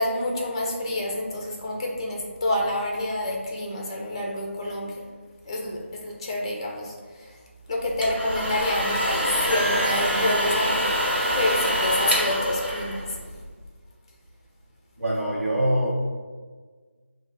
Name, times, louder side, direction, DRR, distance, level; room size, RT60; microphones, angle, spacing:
voice 1, 0.0-4.9 5.4-7.3 7.7-10.9 11.3-13.0, left 1 dB, 25° left, -1 dB, 0.5 m, -28 dB
sound 1, 7.8-13.5, equal, 50° right, 1.0 m, -25 dB
voice 2, 15.0-16.0, right 1 dB, 80° right, -5 dB, 0.7 m, -24 dB
4.8 x 2.0 x 2.6 m, 1.5 s
figure-of-eight pair, 160°, 7 cm